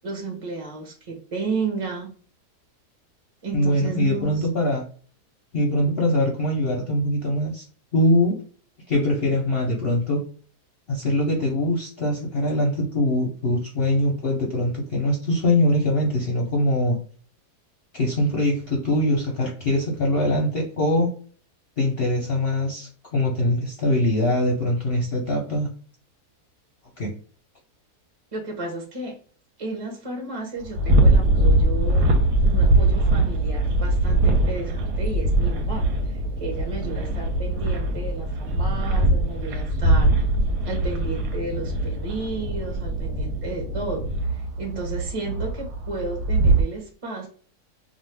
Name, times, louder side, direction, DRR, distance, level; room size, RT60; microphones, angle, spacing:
voice 1, 0.0-2.1 3.4-4.5 28.3-29.1 29.6-32.1 32.4-40.1 40.6-47.3, right 3 dB, 30° right, 0 dB, 0.7 m, -33 dB
voice 2, 3.5-4.8 5.5-7.6 7.9-8.4 8.9-10.2 10.9-17.0 17.9-21.1 21.8-25.7 27.0-27.1, left 1 dB, 50° left, -1 dB, 0.8 m, -22 dB
Parque da Cidade - Patos, 30.6-46.6, right 1 dB, 90° right, 1.2 m, -22 dB
sound 1, 31.1-43.4, right 2 dB, 70° right, 1.0 m, -32 dB
2.5 x 2.5 x 3.2 m, 0.43 s
omnidirectional pair, 1.7 m